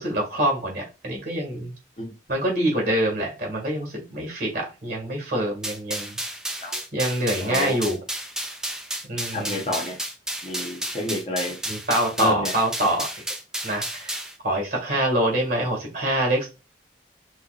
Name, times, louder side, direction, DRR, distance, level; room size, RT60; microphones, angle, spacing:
voice 1, 0.0-1.7 2.3-6.2 6.9-8.0 9.0-9.6 11.7-13.2 13.6-14.1 14.4-16.5, right 1 dB, 50° right, -1 dB, 2.0 m, -25 dB
sound 1, 5.6-14.3, right 1 dB, 5° right, 0.3 m, -32 dB
voice 2, 7.4-7.8 9.3-10.0 10.4-11.6 12.2-12.5, left 1 dB, 35° left, -1 dB, 1.0 m, -29 dB
5.5 x 2.5 x 2.5 m, 0.30 s
head